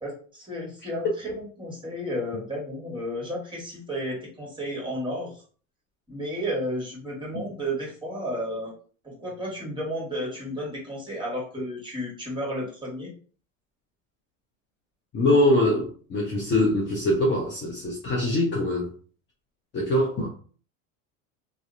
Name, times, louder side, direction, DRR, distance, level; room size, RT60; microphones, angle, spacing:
voice 1, 0.0-5.4 6.1-8.7 9.0-13.1, equal, 10° right, 1.2 m, -32 dB
voice 2, 15.1-18.9 19.7-20.3, left 1 dB, 30° left, 0.6 m, -23 dB
2.6 x 2.0 x 2.4 m
supercardioid pair, 100°, 41 cm